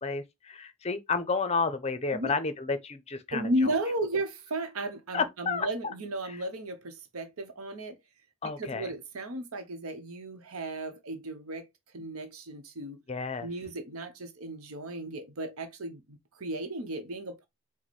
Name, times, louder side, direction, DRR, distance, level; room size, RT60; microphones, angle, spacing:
voice 1, 0.0-3.7 5.1-5.7 6.2-6.4 8.4-8.9 13.1-13.5, left 4 dB, 30° left, 0.5 m, -31 dB
voice 2, 3.3-8.0 8.6-11.7 11.9-13.0 13.4-17.5, right 1 dB, 80° right, 0.9 m, -34 dB
4.6 x 2.1 x 4.1 m
head